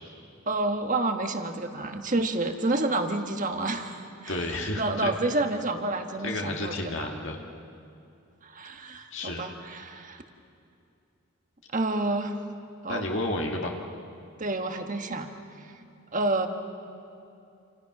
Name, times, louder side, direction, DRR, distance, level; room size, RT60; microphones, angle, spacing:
voice 1, 0.5-4.4 4.7-7.1 8.4-10.2 11.7-12.3 12.8-13.1 14.4-15.3 16.1-16.5, right 2 dB, 35° right, 6 dB, 1.5 m, -29 dB
voice 2, 4.3-5.1 6.2-7.4 9.1-9.4 12.9-13.7, left 2 dB, 60° left, 1 dB, 1.9 m, -31 dB
29.0 x 27.5 x 6.0 m, 2.6 s
head